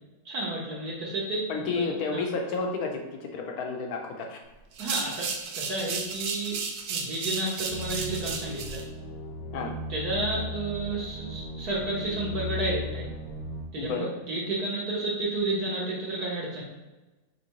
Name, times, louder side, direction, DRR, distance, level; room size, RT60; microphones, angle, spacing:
voice 1, 0.2-1.5 1.7-1.8 2.1-2.2 4.8-6.6 6.9-8.8 9.9-13.1 13.7-16.6, right 2 dB, 65° right, -5 dB, 1.3 m, -31 dB
voice 2, 1.5-4.4 9.5-9.7 13.8-14.1, left 4 dB, 65° left, 2 dB, 1.1 m, -31 dB
sound 1, 4.7-8.8, right 5 dB, 90° right, 1.3 m, -34 dB
sound 2, 7.7-13.6, left 1 dB, 45° left, 0.8 m, -36 dB
5.4 x 3.2 x 3.0 m, 1.1 s
omnidirectional pair, 1.9 m